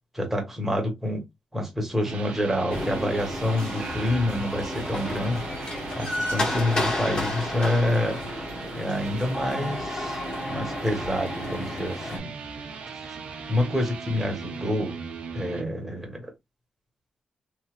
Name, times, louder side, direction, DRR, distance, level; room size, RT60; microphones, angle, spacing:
voice 1, 0.1-1.2 1.5-8.2 8.7-10.2 10.5-12.3 13.5-14.9 15.3-16.3, left 1 dB, 10° right, 1.2 m, -27 dB
sound 1, 1.9-15.7, right 5 dB, 85° right, 0.6 m, -38 dB
sound 2, 2.7-12.2, left 1 dB, 40° left, 1.7 m, -32 dB
sound 3, 3.8-6.4, right 1 dB, 35° right, 0.8 m, -42 dB
3.1 x 2.7 x 2.4 m
wide cardioid pair, 110°, 2 cm